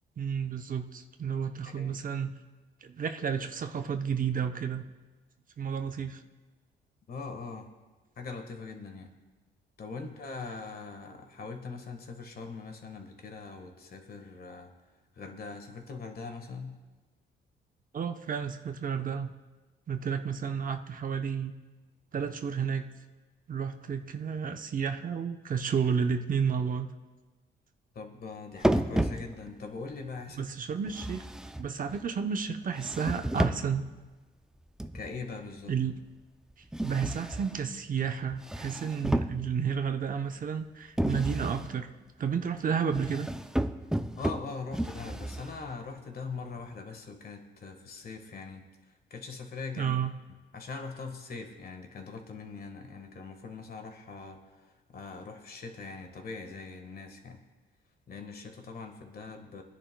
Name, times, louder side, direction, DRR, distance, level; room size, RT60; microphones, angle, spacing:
voice 1, 0.2-2.3 2.8-4.8 5.6-6.2 17.9-19.3 19.9-21.5 22.1-22.9 23.5-26.9 30.4-31.3 31.6-33.9 35.7-35.9 36.8-41.9 42.2-43.3 49.8-50.1, right 7 dB, 45° right, 7 dB, 0.7 m, -31 dB
voice 2, 7.1-7.7 8.2-9.1 9.8-14.7 15.1-16.8 27.9-30.5 34.9-35.7 44.2-49.9 50.5-57.4 58.1-59.6, left 4 dB, 50° left, 5 dB, 1.5 m, -42 dB
sound 1, 28.6-29.7 30.9-32.1 32.8-33.9 34.8-35.2 36.7-37.7 38.3-39.8 41.0-41.7 42.9-45.7, right 1 dB, 5° right, 0.4 m, -32 dB
21.5 x 10.0 x 2.2 m, 1.2 s
cardioid pair, 90°, 20 cm